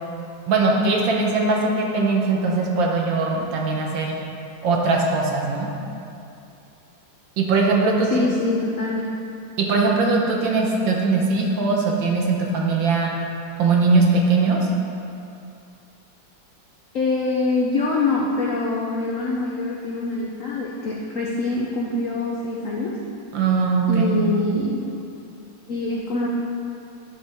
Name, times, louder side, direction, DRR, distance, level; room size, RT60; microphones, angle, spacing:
voice 1, 0.5-4.1 4.6-5.7 7.4-8.3 9.6-13.1 13.6-14.6 23.3-24.2, right 3 dB, 70° right, -1 dB, 1.7 m, -20 dB
voice 2, 8.1-9.0 16.9-23.0 23.9-24.9 25.7-26.3, left 2 dB, 75° left, -3 dB, 0.7 m, -24 dB
11.0 x 5.4 x 3.5 m, 2.7 s
omnidirectional pair, 2.2 m